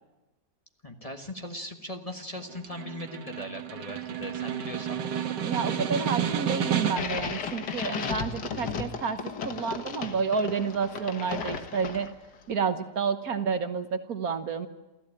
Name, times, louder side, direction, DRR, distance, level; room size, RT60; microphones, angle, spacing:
voice 1, 0.8-5.1, left 1 dB, 20° left, 4 dB, 1.5 m, -39 dB
Snare drum, 2.4-7.3, right 9 dB, 85° right, 1.9 m, -31 dB
voice 2, 5.4-12.1 12.5-14.7, right 5 dB, 60° right, 9 dB, 1.6 m, -30 dB
sound 1, 6.8-12.3, left 6 dB, 75° left, 2.0 m, -35 dB
28.5 x 14.5 x 8.7 m, 1.0 s
omnidirectional pair, 1.8 m